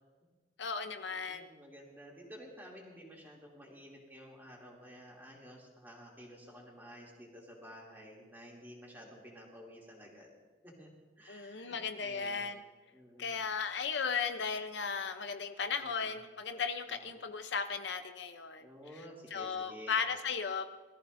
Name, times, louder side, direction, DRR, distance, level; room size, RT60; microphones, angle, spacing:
voice 1, 0.6-1.5 11.3-12.6 13.2-18.7 19.3-20.6, left 5 dB, 70° left, 7 dB, 0.7 m, -36 dB
voice 2, 1.1-10.3 10.6-10.9 11.2-12.5 12.9-13.5 15.8-16.2 16.9-17.2 18.6-20.0, equal, 10° right, -3 dB, 2.7 m, -52 dB
21.5 x 14.0 x 2.7 m, 1.4 s
head